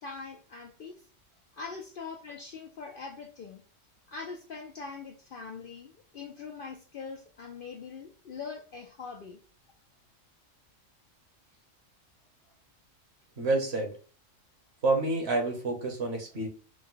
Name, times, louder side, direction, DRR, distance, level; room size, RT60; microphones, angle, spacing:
voice 1, 0.0-0.9 1.5-3.6 4.1-9.4, left 5 dB, 60° left, 2 dB, 0.6 m, -42 dB
voice 2, 13.4-13.9 14.8-16.5, right 2 dB, 55° right, 2 dB, 1.3 m, -28 dB
5.1 x 2.1 x 3.8 m, 0.38 s
omnidirectional pair, 1.4 m